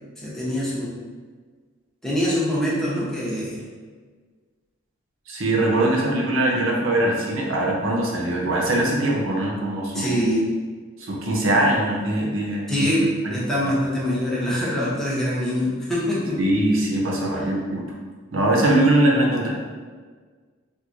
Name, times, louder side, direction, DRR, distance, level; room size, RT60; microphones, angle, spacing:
voice 1, 0.2-0.9 2.0-3.6 9.9-10.4 12.7-16.4 17.3-17.4, equal, ahead, -8 dB, 0.8 m, -24 dB
voice 2, 5.3-10.2 11.0-12.9 13.2-13.4 16.4-17.8 18.3-19.5, right 1 dB, 75° right, -2 dB, 0.7 m, -21 dB
4.5 x 2.1 x 2.5 m, 1.5 s
head